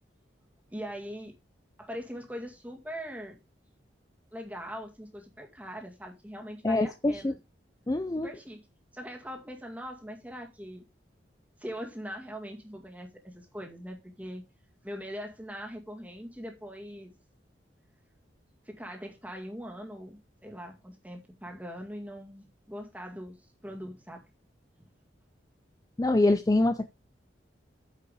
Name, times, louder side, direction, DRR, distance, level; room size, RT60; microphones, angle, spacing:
voice 1, 0.7-1.3 1.8-3.4 4.3-7.4 8.2-8.6 8.9-10.8 11.6-14.4 14.8-17.1 18.6-23.4 23.6-24.2, equal, 10° right, 2.1 m, -41 dB
voice 2, 6.6-7.3 7.9-8.3 26.0-26.9, left 2 dB, 20° left, 0.4 m, -25 dB
9.3 x 5.5 x 5.3 m
head